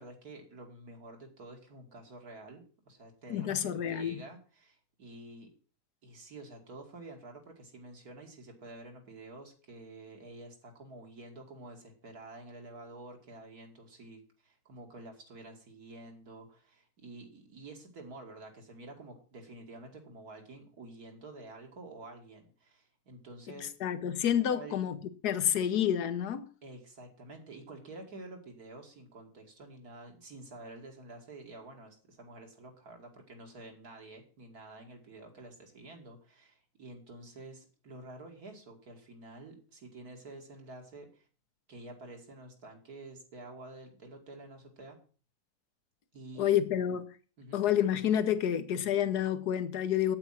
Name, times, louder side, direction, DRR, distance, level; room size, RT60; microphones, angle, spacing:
voice 1, 0.0-5.5 6.0-23.7 24.5-24.8 26.6-41.3 41.7-45.0 46.1-46.8 47.4-47.6, right 2 dB, 70° right, 2.8 m, -49 dB
voice 2, 3.3-4.2 23.8-25.0 25.2-26.5 46.4-47.1 47.5-50.2, left 10 dB, 85° left, 1.5 m, -29 dB
8.8 x 8.7 x 5.8 m
omnidirectional pair, 1.6 m